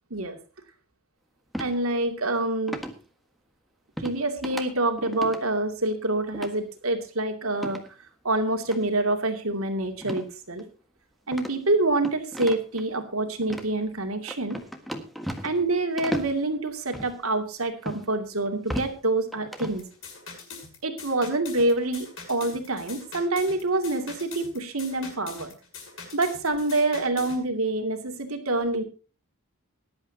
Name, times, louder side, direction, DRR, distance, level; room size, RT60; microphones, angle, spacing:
sound 1, 1.5-1.7 2.7-3.0 4.0-4.2 4.4-4.6 5.0-5.4 6.3-6.5 7.5-7.9 8.6-8.8 10.0-10.3 10.6-10.7 11.3-12.8 13.4-13.7 14.3-15.7 16.0-16.3 16.9-17.1 17.8-18.0 18.5-18.9 19.3-19.8, equal, ahead, 1.5 m, -34 dB
voice 1, 1.6-2.8 4.0-7.8 8.2-10.7 11.3-14.6 15.4-19.8 20.8-25.5 26.1-28.8, right 2 dB, 75° right, 5 dB, 2.6 m, -26 dB
sound 2, 19.8-27.4, left 4 dB, 60° left, 6.2 m, -43 dB
19.0 x 11.5 x 2.9 m, 0.35 s
head